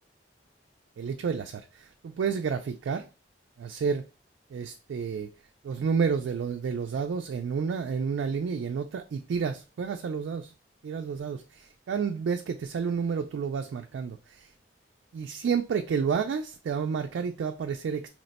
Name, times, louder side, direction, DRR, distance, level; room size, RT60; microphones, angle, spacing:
voice 1, 1.0-3.1 3.6-4.0 4.5-5.3 5.6-10.5 10.8-14.5 15.1-18.1, right 6 dB, 80° right, 0.3 m, -30 dB
2.9 x 2.1 x 4.0 m
head